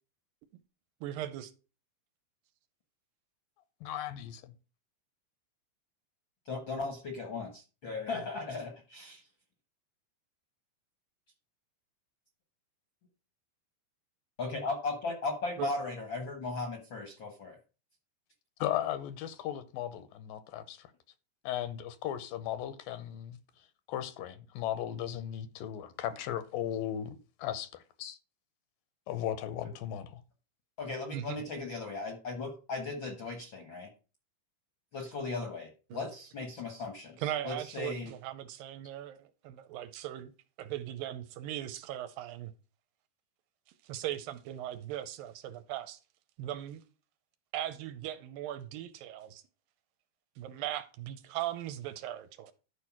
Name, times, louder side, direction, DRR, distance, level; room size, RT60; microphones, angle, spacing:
voice 1, 1.0-1.5 15.6-15.7 31.1-31.4 35.9-36.1 37.2-40.3 40.6-42.5 43.8-46.0 46.4-46.8 47.5-49.4 50.4-52.5, right 12 dB, 80° right, 2.3 m, -38 dB
voice 2, 3.8-4.5 18.6-20.9 21.4-23.4 23.9-28.2 29.1-30.2, left 11 dB, 80° left, 2.2 m, -36 dB
voice 3, 6.4-9.2 14.4-17.6 30.8-33.9 34.9-38.1, left 3 dB, 60° left, 1.3 m, -37 dB
11.5 x 4.7 x 5.9 m
omnidirectional pair, 4.3 m